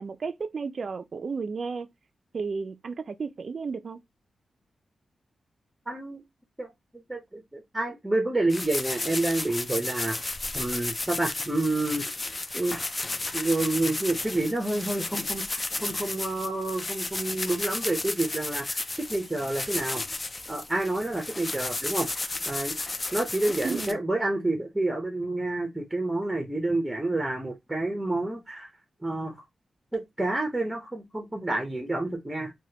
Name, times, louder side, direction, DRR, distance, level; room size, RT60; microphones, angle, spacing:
voice 1, 0.0-1.9 2.3-4.0 23.6-24.0, right 5 dB, 50° right, 0.3 m, -33 dB
voice 2, 5.9-6.2 6.6-10.2 10.5-12.1 12.5-12.8 13.3-20.0 20.5-22.1 22.5-28.7 29.0-29.4 29.9-32.5, right 2 dB, 10° right, 0.6 m, -29 dB
sound 1, 8.5-23.9, left 2 dB, 25° left, 0.3 m, -33 dB
3.1 x 2.2 x 2.7 m
wide cardioid pair, 110°, 0 cm